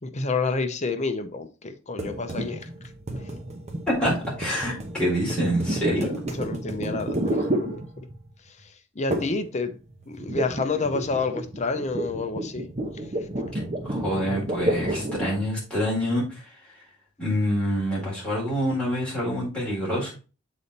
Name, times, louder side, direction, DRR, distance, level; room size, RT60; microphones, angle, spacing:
voice 1, 0.0-2.7 5.8-8.1 9.0-9.7 10.1-12.7, left 3 dB, 35° left, 0.7 m, -29 dB
sound 1, 2.0-8.3 9.1-9.5 9.7-15.4, right 1 dB, 35° right, 1.0 m, -30 dB
voice 2, 4.0-6.1 13.8-16.4 17.2-20.1, equal, 5° left, 3.9 m, -26 dB
7.0 x 4.1 x 4.0 m
head